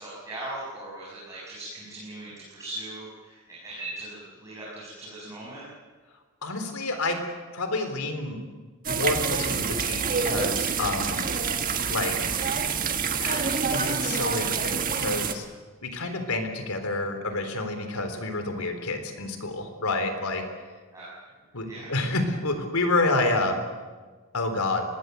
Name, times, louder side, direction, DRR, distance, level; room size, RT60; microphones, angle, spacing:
voice 1, 0.0-5.6 12.3-12.5 20.9-21.0 21.7-21.9, right 2 dB, 15° right, -8 dB, 7.2 m, -39 dB
voice 2, 6.4-7.2 7.5-8.4 8.9-11.2 11.9-12.1 13.2-15.5 15.8-20.4 21.5-23.6 24.3-24.8, left 2 dB, 85° left, 6 dB, 3.7 m, -28 dB
sound 1, 8.8-15.3, right 5 dB, 40° right, 1.6 m, -27 dB
25.0 x 20.0 x 8.0 m, 1.4 s
head